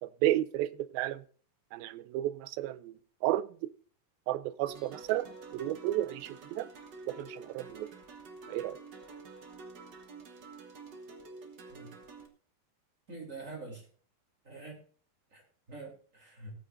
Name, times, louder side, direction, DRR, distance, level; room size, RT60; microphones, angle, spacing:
voice 1, 0.0-1.2 1.7-3.4 4.3-6.7 7.1-7.9 8.5-8.8, right 14 dB, 85° right, 16 dB, 2.4 m, -32 dB
sound 1, 4.7-12.3, right 3 dB, 55° right, 1.2 m, -49 dB
voice 2, 13.1-13.9 14.4-14.8 15.3-15.4 15.7-16.5, right 3 dB, 20° right, 0 dB, 3.5 m, -45 dB
19.0 x 8.9 x 2.6 m, 0.44 s
omnidirectional pair, 4.2 m